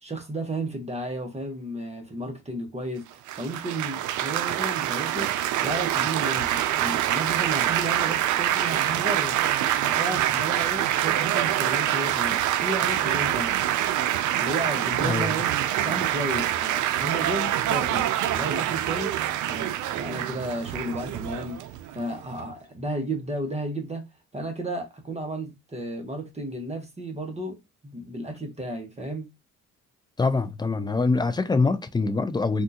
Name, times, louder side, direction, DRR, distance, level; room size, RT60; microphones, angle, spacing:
voice 1, 0.0-5.3 5.6-9.4 9.9-13.5 14.4-15.5 15.8-18.1 18.3-19.2 19.4-21.6 21.9-24.0 24.3-29.3, right 1 dB, 20° right, 1.0 m, -33 dB
Laughter / Applause / Chatter, 3.3-22.4, right 12 dB, 75° right, 0.5 m, -25 dB
voice 2, 30.2-32.6, left 3 dB, 15° left, 0.4 m, -24 dB
3.5 x 2.4 x 2.8 m
cardioid pair, 90°, 30 cm